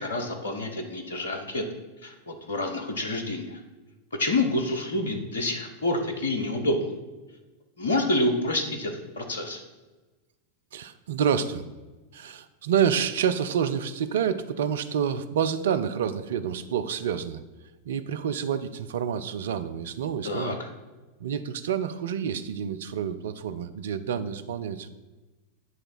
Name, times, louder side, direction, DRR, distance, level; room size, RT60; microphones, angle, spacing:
voice 1, 0.0-1.6 2.0-3.6 4.2-6.9 7.8-9.6 20.2-20.5, left 2 dB, 70° left, 5 dB, 1.0 m, -28 dB
voice 2, 10.7-11.7 12.1-17.4 17.9-20.6 21.2-24.9, right 8 dB, 60° right, 11 dB, 0.4 m, -28 dB
9.3 x 3.3 x 5.7 m, 1.2 s
figure-of-eight pair, 90°, 0 cm